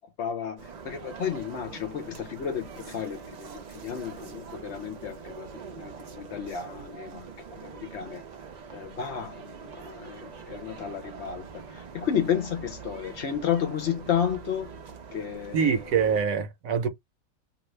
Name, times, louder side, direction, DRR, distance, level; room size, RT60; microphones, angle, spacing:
voice 1, 0.2-5.5 5.8-8.2 8.7-14.7 15.1-15.8, left 8 dB, 65° left, 0.8 m, -32 dB
sound 1, 0.6-16.3, right 5 dB, 50° right, 0.5 m, -44 dB
voice 2, 15.5-16.9, right 6 dB, 75° right, 1.2 m, -24 dB
2.6 x 2.3 x 3.1 m
omnidirectional pair, 1.5 m